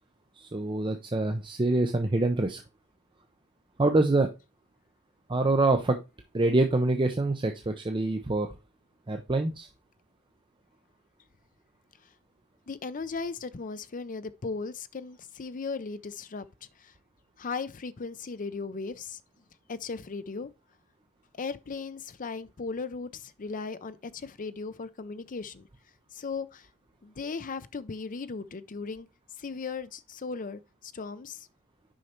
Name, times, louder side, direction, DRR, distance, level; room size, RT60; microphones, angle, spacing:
voice 1, 0.4-2.6 3.8-4.3 5.3-6.0 6.3-8.5 9.1-9.7, right 2 dB, 20° right, 0.6 m, -25 dB
voice 2, 12.7-16.5 16.8-16.9 17.4-19.2 19.7-20.5 21.4-25.7 26.1-26.7 27.0-29.1 29.4-31.5, left 4 dB, 40° left, 0.5 m, -37 dB
6.4 x 5.4 x 4.4 m
head